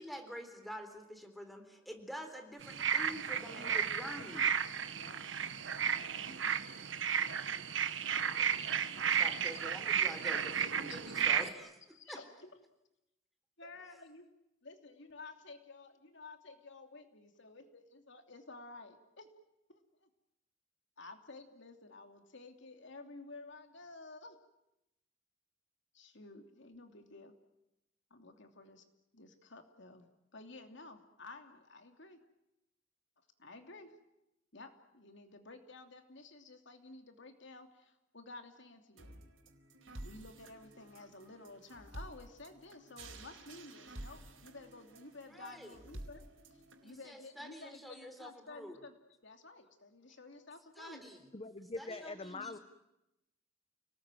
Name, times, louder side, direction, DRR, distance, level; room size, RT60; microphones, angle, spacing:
voice 1, 0.0-4.5 8.9-11.7 12.1-12.2 13.6-13.7 45.3-45.8 46.8-48.8 50.8-51.2 51.8-52.6, equal, ahead, 6 dB, 3.6 m, -47 dB
sound 1, 2.6-11.5, right 8 dB, 70° right, 1.4 m, -33 dB
voice 2, 3.4-4.5 4.9-5.2 5.7-6.4 8.0-8.5 11.9-12.5 13.6-14.3 14.6-19.3 19.7-20.1 21.0-24.4 25.9-27.3 28.1-28.8 29.1-30.1 30.3-32.2 33.4-33.9 34.5-39.2 40.0-46.2 46.5-48.9 49.2-51.0, left 3 dB, 65° left, 6 dB, 2.9 m, -53 dB
sound 2, 39.0-47.0, right 1 dB, 85° right, 4.2 m, -51 dB
voice 3, 51.3-52.6, left 3 dB, 30° left, 11 dB, 1.1 m, -43 dB
29.5 x 19.5 x 9.2 m, 0.90 s
head